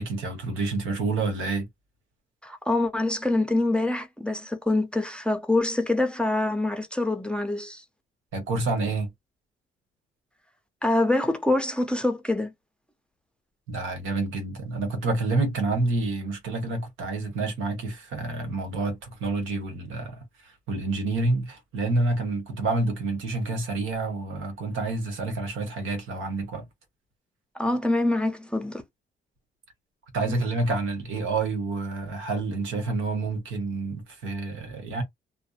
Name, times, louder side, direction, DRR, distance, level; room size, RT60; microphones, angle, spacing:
voice 1, 0.0-1.7 8.3-9.1 13.7-26.7 30.1-35.0, right 3 dB, 80° right, 1.2 m, -28 dB
voice 2, 2.4-7.8 10.8-12.5 27.6-28.8, left 2 dB, 5° left, 0.5 m, -25 dB
2.6 x 2.0 x 2.4 m
cardioid pair, 90°, 20 cm